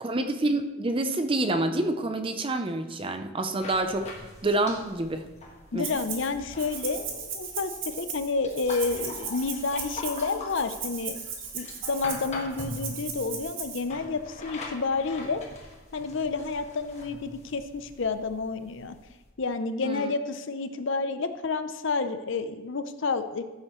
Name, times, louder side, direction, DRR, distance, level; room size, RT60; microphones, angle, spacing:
voice 1, 0.0-4.1 4.4-5.3 5.7-5.9 19.8-20.1, right 2 dB, 25° right, 7 dB, 0.6 m, -27 dB
sound 1, 3.6-19.3, left 2 dB, 30° left, 1.4 m, -43 dB
voice 2, 5.7-11.2 11.5-15.4 15.9-19.0 19.4-23.4, left 4 dB, 55° left, 10 dB, 0.6 m, -30 dB
Rattle (instrument), 5.8-6.3 6.6-13.8, right 6 dB, 60° right, 1.7 m, -37 dB
15.0 x 7.7 x 3.1 m, 1.1 s
head